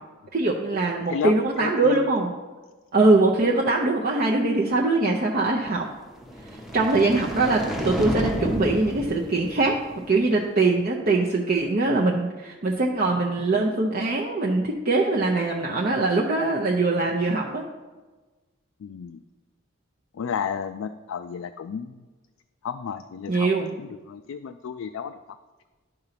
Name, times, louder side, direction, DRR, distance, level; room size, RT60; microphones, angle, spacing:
voice 1, 0.3-2.3 2.9-5.9 6.4-9.8 10.1-17.6 23.3-23.7, right 2 dB, 45° right, -1 dB, 0.6 m, -22 dB
voice 2, 1.1-2.0 18.8-19.2 20.1-22.0 22.6-25.2, left 7 dB, 70° left, 8 dB, 0.3 m, -32 dB
sound 1, 6.1-10.4, equal, ahead, 0.7 m, -31 dB
11.0 x 3.9 x 5.8 m, 1.3 s
head